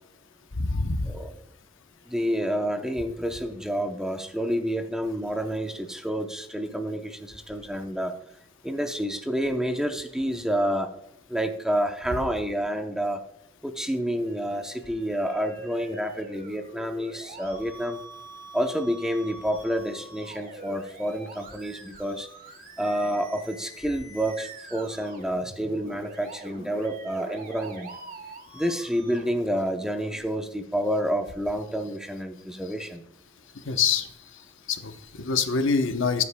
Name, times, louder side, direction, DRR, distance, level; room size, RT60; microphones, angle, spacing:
voice 1, 0.6-1.1 33.7-34.1 34.7-36.2, left 5 dB, 65° left, 8 dB, 0.9 m, -25 dB
voice 2, 2.1-8.1 8.6-10.9 11.3-13.2 13.6-18.0 18.5-22.3 22.8-27.9 28.5-33.0, equal, 5° right, 5 dB, 0.7 m, -29 dB
Musical instrument, 14.3-30.2, right 2 dB, 40° right, 1.7 m, -45 dB
14.0 x 8.5 x 2.2 m, 0.82 s
head